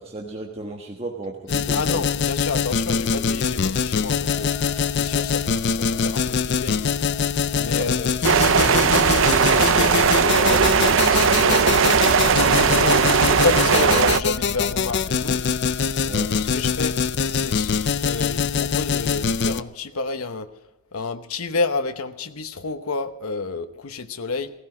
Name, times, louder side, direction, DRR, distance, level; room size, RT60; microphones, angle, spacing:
voice 1, 0.0-2.0 7.6-7.9 16.0-16.3, right 2 dB, 25° right, 1 dB, 1.3 m, -34 dB
sound 1, 1.5-19.6, left 6 dB, 50° left, 0.5 m, -23 dB
voice 2, 1.7-4.5 4.9-6.9 7.6-8.1 8.6-10.6 11.1-12.2 12.4-13.0 13.4-15.4 16.4-17.0 17.3-20.5 20.9-24.5, left 3 dB, 75° left, 8 dB, 1.0 m, -29 dB
sound 2, 4.2-18.3, left 3 dB, 5° left, 6.4 m, -43 dB
sound 3, 8.2-14.2, right 6 dB, 60° right, 0.6 m, -18 dB
16.5 x 16.5 x 4.9 m, 1.0 s
head